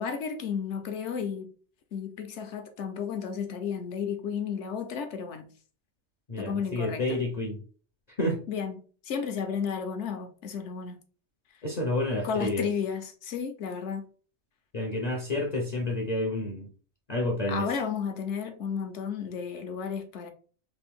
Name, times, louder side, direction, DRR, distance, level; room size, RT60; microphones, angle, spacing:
voice 1, 0.0-1.5 1.9-5.5 6.4-7.2 8.5-8.8 9.0-11.0 12.2-14.1 17.5-20.3, left 6 dB, 65° left, 0.9 m, -33 dB
voice 2, 6.3-7.6 8.2-8.4 11.6-12.6 14.7-16.7 17.1-17.6, left 1 dB, 45° left, 0.6 m, -29 dB
3.4 x 2.5 x 3.5 m
omnidirectional pair, 1.4 m